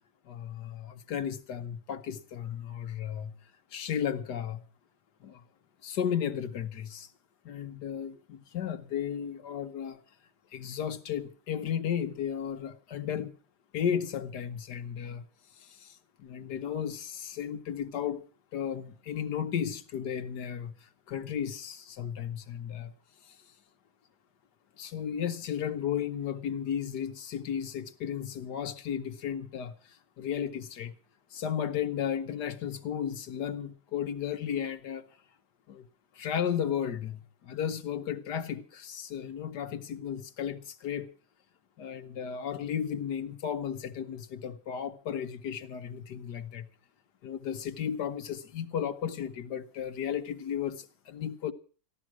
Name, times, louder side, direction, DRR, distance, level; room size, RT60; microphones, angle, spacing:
voice 1, 0.2-3.3 3.7-4.6 5.2-5.4 5.8-7.1 7.4-10.0 10.5-13.3 13.7-15.2 15.5-18.2 18.5-22.9 23.2-23.4 24.8-30.9 31.3-35.0 35.7-35.9 36.1-41.1 41.8-46.7 47.2-51.5, left 8 dB, 60° left, 1.3 m, -34 dB
14.5 x 12.0 x 6.1 m
omnidirectional pair, 2.2 m